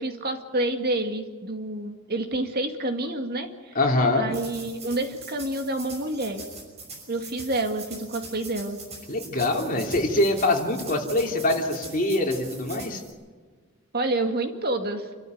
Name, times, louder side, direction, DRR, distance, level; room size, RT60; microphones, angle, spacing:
voice 1, 0.0-3.8 4.1-6.4 7.1-8.8 13.9-15.1, right 2 dB, 45° right, 5 dB, 2.1 m, -28 dB
voice 2, 3.7-4.3 9.1-13.0, left 2 dB, 40° left, 1 dB, 3.2 m, -24 dB
sound 1, 4.3-13.1, right 3 dB, 30° right, 6.1 m, -43 dB
28.5 x 13.5 x 9.5 m, 1.5 s
head